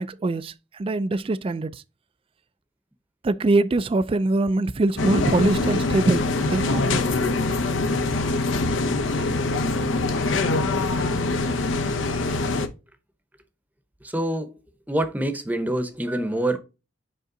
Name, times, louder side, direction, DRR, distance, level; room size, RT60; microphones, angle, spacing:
voice 1, 0.0-1.8 3.2-7.2, right 2 dB, 30° right, 0.3 m, -23 dB
sound 1, 5.0-12.7, left 3 dB, 75° left, 0.7 m, -24 dB
voice 2, 14.0-14.6 14.9-16.6, right 1 dB, 10° right, 0.8 m, -26 dB
5.4 x 5.3 x 3.8 m
head